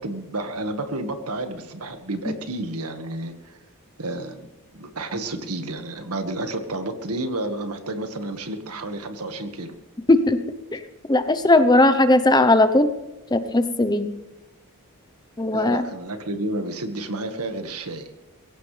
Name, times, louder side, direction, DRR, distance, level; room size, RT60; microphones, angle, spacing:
voice 1, 0.0-3.6 4.0-4.5 4.7-9.8 15.5-18.1, right 2 dB, 80° right, 6 dB, 1.7 m, -31 dB
voice 2, 10.1-10.4 10.7-10.8 11.1-12.9 13.3-14.1 15.4-15.8, left 2 dB, 20° left, 10 dB, 0.8 m, -18 dB
22.5 x 16.5 x 3.4 m, 1.0 s
head